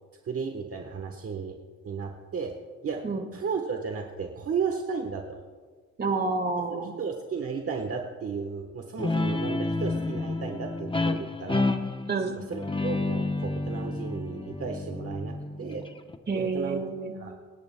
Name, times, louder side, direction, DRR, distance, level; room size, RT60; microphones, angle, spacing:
voice 1, 0.2-1.6 1.8-2.5 2.8-3.0 3.3-5.4 7.0-11.7 12.4-15.9 16.3-16.8 17.1-17.3, right 5 dB, 50° right, 3 dB, 1.1 m, -34 dB
voice 2, 6.0-6.9 12.1-12.3 16.3-17.1, right 3 dB, 35° right, 4 dB, 1.7 m, -28 dB
Guitar, 9.0-16.2, left 2 dB, 15° left, 0.8 m, -30 dB
27.5 x 10.5 x 2.2 m, 1.5 s
cardioid pair, 100°, 30 cm